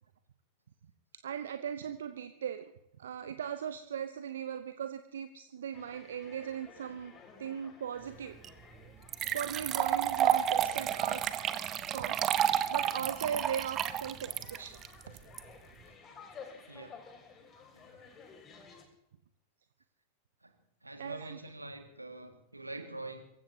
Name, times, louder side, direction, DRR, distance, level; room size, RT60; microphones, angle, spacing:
voice 1, 1.2-2.7 3.0-7.1 7.4-8.3 9.3-11.2 11.9-12.2 12.7-14.8 21.0-21.4, right 8 dB, 65° right, 10 dB, 0.7 m, -38 dB
sound 1, 5.7-18.8, left 5 dB, 25° left, 2.6 m, -54 dB
sound 2, 8.4-8.5 9.1-15.4, right 10 dB, 30° right, 0.8 m, -30 dB
voice 2, 16.7-17.0 17.7-18.0 20.4-20.5 20.8-23.2, right 2 dB, 85° right, 6 dB, 1.8 m, -45 dB
24.5 x 15.0 x 2.8 m, 0.83 s
figure-of-eight pair, 90°, 0 cm